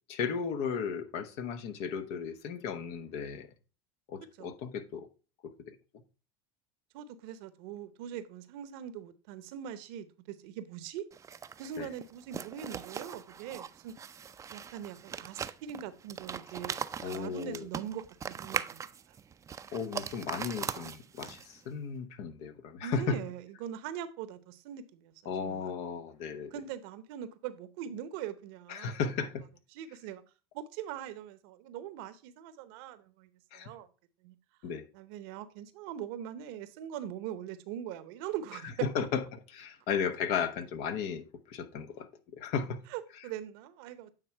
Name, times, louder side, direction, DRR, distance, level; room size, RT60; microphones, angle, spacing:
voice 1, 0.1-3.5 4.1-5.1 5.4-5.8 11.8-11.9 17.0-17.7 19.7-23.2 25.3-26.5 28.7-29.4 33.5-33.7 34.6-34.8 38.8-42.8, left 6 dB, 60° left, 1.0 m, -35 dB
voice 2, 6.9-11.0 11.6-13.9 14.5-16.7 17.0-18.9 22.8-25.7 26.5-29.0 29.7-30.2 30.5-33.9 34.2-34.4 34.9-38.7 39.0-39.1 42.9-44.1, right 9 dB, 70° right, 0.8 m, -42 dB
sound 1, 11.1-21.6, right 7 dB, 25° right, 0.4 m, -40 dB
9.0 x 3.7 x 4.4 m
hypercardioid pair, 90°, 13 cm